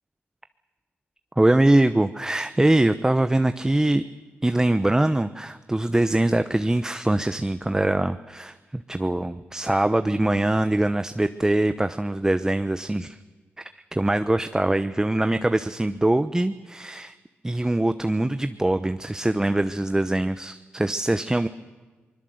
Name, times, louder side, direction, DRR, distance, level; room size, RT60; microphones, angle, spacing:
voice 1, 1.4-4.0 4.4-13.2 13.6-13.7 13.9-17.1 17.4-21.5, right 1 dB, 15° right, 11 dB, 0.9 m, -23 dB
24.0 x 21.0 x 7.9 m, 1.3 s
cardioid pair, 70°, 4 cm